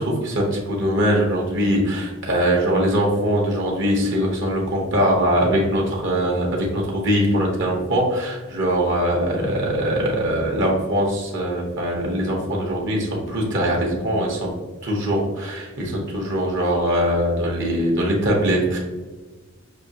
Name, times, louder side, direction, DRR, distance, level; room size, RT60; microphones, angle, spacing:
voice 1, 0.0-14.5 14.8-18.8, equal, 55° right, -1 dB, 0.9 m, -22 dB
6.1 x 2.7 x 2.8 m, 1.2 s
head